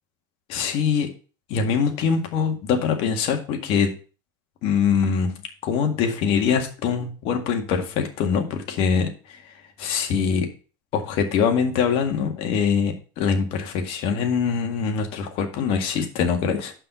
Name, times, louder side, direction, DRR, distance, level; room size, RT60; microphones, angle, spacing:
voice 1, 0.5-1.1 1.5-3.9 4.6-5.3 5.6-9.1 9.8-10.5 10.9-16.7, left 6 dB, 55° left, 5 dB, 1.9 m, -23 dB
5.9 x 5.6 x 6.9 m, 0.37 s
supercardioid pair, 125°, 11 cm